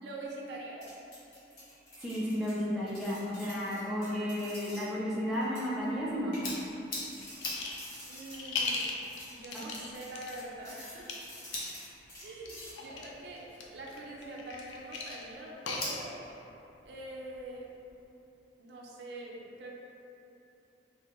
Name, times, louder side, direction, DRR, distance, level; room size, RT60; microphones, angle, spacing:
voice 1, 0.0-1.0 8.0-8.9 9.3-11.1 12.2-16.2 16.9-17.7 18.6-19.7, right 1 dB, 65° right, -2 dB, 0.4 m, -44 dB
sound 1, 0.8-4.9 5.3-5.9 6.3-6.8 7.1-12.9, left 1 dB, 70° left, 1.4 m, -50 dB
voice 2, 2.0-6.4 9.5-9.6, equal, ahead, -8 dB, 0.4 m, -33 dB
sound 2, 5.7-18.0, left 2 dB, 50° left, 0.8 m, -46 dB
sound 3, 7.4-7.9 8.2-10.3 10.9-11.1 12.4-13.1 13.5-16.3, left 3 dB, 90° left, 0.4 m, -37 dB
3.3 x 2.2 x 2.9 m, 2.9 s
head